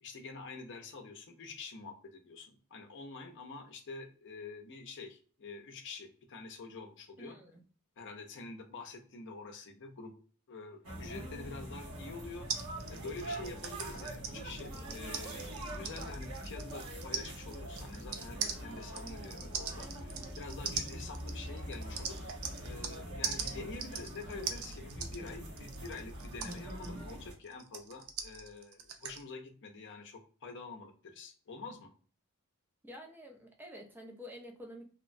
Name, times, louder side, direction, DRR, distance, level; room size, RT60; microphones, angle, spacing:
voice 1, 0.0-7.4 8.0-10.1 10.5-12.5 12.9-22.2 22.6-31.9, left 3 dB, 55° left, 4 dB, 0.5 m, -47 dB
voice 2, 7.2-7.6 32.8-34.8, equal, 10° right, 1 dB, 0.5 m, -49 dB
sound 1, 10.8-27.3, right 1 dB, 85° right, 1.0 m, -43 dB
sound 2, 12.5-23.0 23.2-29.2, right 6 dB, 65° right, 0.4 m, -41 dB
2.9 x 2.0 x 2.5 m, 0.41 s
head